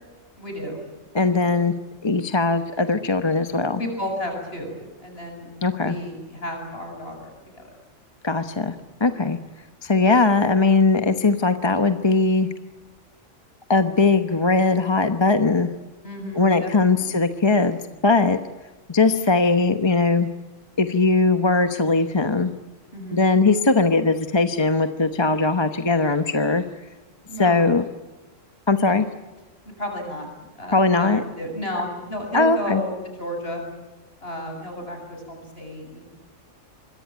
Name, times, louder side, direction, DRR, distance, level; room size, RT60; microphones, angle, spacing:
voice 1, 0.4-0.8 1.3-1.6 3.8-5.5 5.8-7.6 16.0-16.7 17.0-17.2 22.9-23.3 27.3-27.6 28.8-28.9 29.8-32.9 33.2-33.6 34.2-36.0, left 1 dB, 50° left, 2 dB, 8.3 m, -33 dB
voice 2, 1.1-1.7 2.0-3.8 5.6-6.0 8.2-8.7 9.0-9.4 9.8-12.5 13.7-15.7 16.3-18.4 18.9-20.3 20.8-22.5 23.1-26.6 27.4-27.8 28.7-29.0 30.7-31.2 32.3-32.8, left 3 dB, 25° left, 8 dB, 1.0 m, -20 dB
26.0 x 22.0 x 9.5 m, 1.2 s
omnidirectional pair, 1.3 m